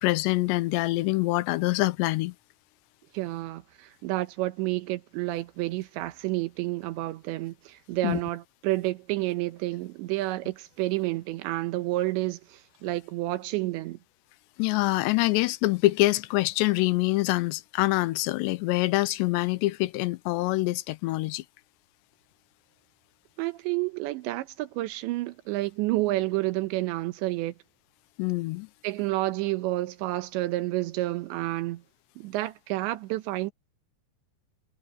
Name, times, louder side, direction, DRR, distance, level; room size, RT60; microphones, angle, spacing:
voice 1, 0.0-2.3 8.0-8.2 14.6-21.4 28.2-28.7, left 19 dB, 85° left, 2.9 m, -25 dB
voice 2, 3.1-14.0 23.4-27.5 28.8-31.8 32.2-33.5, right 18 dB, 90° right, 3.3 m, -30 dB
omnidirectional pair, 5.0 m